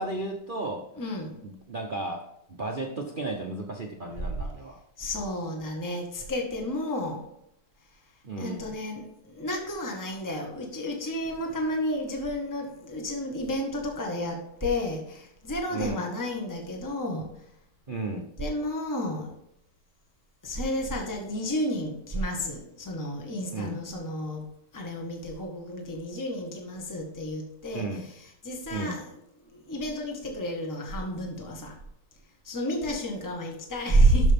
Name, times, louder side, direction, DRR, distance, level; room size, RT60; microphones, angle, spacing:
voice 1, 0.0-0.9 1.4-4.8 8.2-8.7 15.7-16.1 17.9-18.3 23.5-23.8 27.7-28.1 28.7-29.0, right 2 dB, 75° right, 1 dB, 0.4 m, -34 dB
voice 2, 1.0-1.4 5.0-7.2 8.4-17.3 18.4-19.3 20.4-24.4 24.7-27.9 28.4-29.1 29.5-31.7 32.4-34.3, equal, 10° left, 1 dB, 1.3 m, -30 dB
12.5 x 6.1 x 3.6 m, 0.79 s
omnidirectional pair, 2.4 m